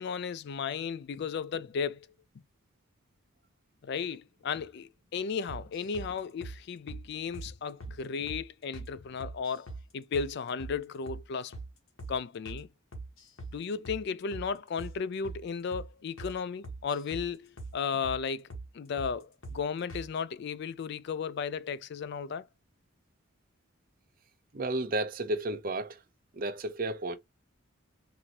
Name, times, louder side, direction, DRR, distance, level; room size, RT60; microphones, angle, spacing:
voice 1, 0.0-2.1 3.8-11.5 12.1-12.7 13.5-18.5 18.7-22.5, left 6 dB, 50° left, 0.3 m, -35 dB
sound 1, 5.5-6.1 6.4-6.6 6.9-7.0 7.3-7.5 7.8-8.0 8.3-8.4 8.7-8.9 9.2-9.8 10.1-10.3 10.6-10.8 11.1-11.2 11.5-11.7 12.0-12.1 12.4-12.6 12.9-13.5 13.8-14.0 14.3-14.5 14.8-14.9 15.2-15.4 15.7-15.9 16.2-16.3 16.6-17.3 17.6-17.7 18.0-18.2 18.5-18.7 19.0-19.1 19.4-19.6 19.9-20.1, right 3 dB, 70° left, 1.3 m, -41 dB
voice 2, 24.5-26.0 26.4-27.2, right 2 dB, 40° right, 0.6 m, -32 dB
4.4 x 2.6 x 2.8 m
head